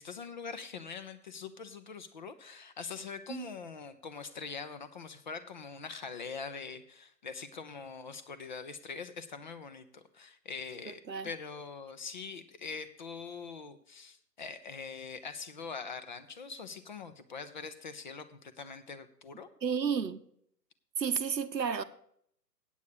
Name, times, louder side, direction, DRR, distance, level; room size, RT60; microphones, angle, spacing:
voice 1, 0.0-19.5, left 5 dB, 30° left, 0.5 m, -43 dB
voice 2, 10.9-11.3 19.6-20.2 21.0-21.8, right 6 dB, 85° right, 0.9 m, -32 dB
8.7 x 8.1 x 6.4 m
figure-of-eight pair, 130°, 49 cm